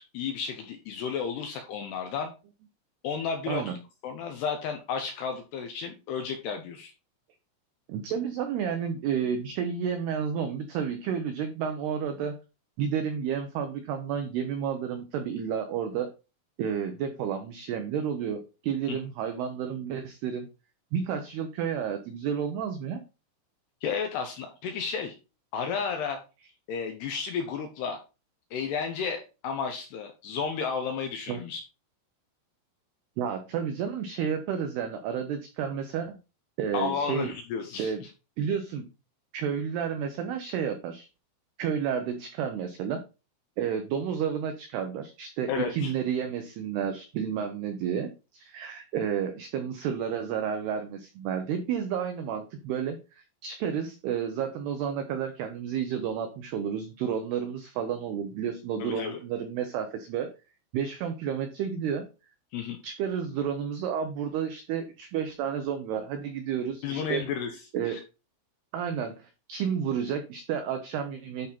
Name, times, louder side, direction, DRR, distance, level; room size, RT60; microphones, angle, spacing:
voice 1, 0.0-2.3 3.0-3.8 4.0-6.9 18.9-19.0 23.8-25.1 25.5-26.2 26.7-28.0 28.5-31.6 36.7-38.1 45.5-45.9 58.8-59.2 62.5-62.8 66.8-67.5 67.9-68.0, left 6 dB, 75° left, 4 dB, 2.5 m, -32 dB
voice 2, 7.9-12.4 12.8-16.1 16.6-20.5 20.9-23.0 31.3-31.4 33.2-36.2 36.6-37.3 37.8-38.1 38.4-38.8 39.3-41.1 41.6-43.0 43.6-60.3 60.7-62.1 62.8-67.2 67.7-68.0 68.7-71.5, right 8 dB, 85° right, 6 dB, 2.3 m, -31 dB
11.0 x 3.8 x 4.3 m, 0.30 s
omnidirectional pair, 5.8 m